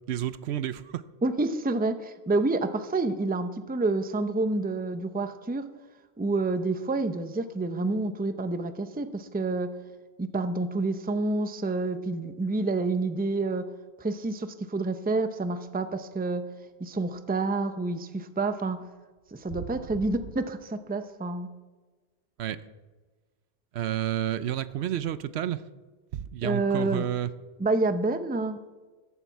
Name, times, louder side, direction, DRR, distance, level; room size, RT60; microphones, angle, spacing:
voice 1, 0.1-1.0 19.5-19.7 22.4-22.6 23.7-25.6 26.1-27.3, right 11 dB, 75° right, 15 dB, 0.9 m, -30 dB
voice 2, 1.2-5.7 6.2-9.7 10.2-13.7 14.0-16.4 16.8-18.8 19.3-21.5 26.4-27.0 27.6-28.6, right 3 dB, 10° right, 10 dB, 0.5 m, -28 dB
14.5 x 11.0 x 4.6 m, 1.3 s
omnidirectional pair, 1.1 m